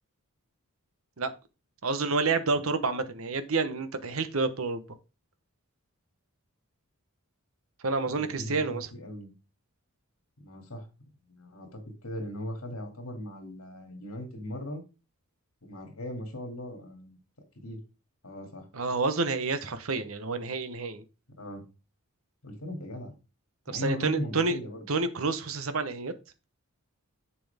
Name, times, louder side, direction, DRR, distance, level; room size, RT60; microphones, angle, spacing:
voice 1, 1.8-4.8 7.8-8.9 18.7-21.0 23.7-24.6 24.9-26.1, right 3 dB, 70° right, 10 dB, 1.0 m, -29 dB
voice 2, 8.0-9.3 10.4-10.9 11.3-14.8 15.6-17.2 17.6-17.8 18.2-18.7 21.4-21.6 22.4-23.1 23.7-24.9, left 1 dB, 80° left, 4 dB, 2.6 m, -38 dB
7.7 x 7.0 x 3.5 m, 0.30 s
head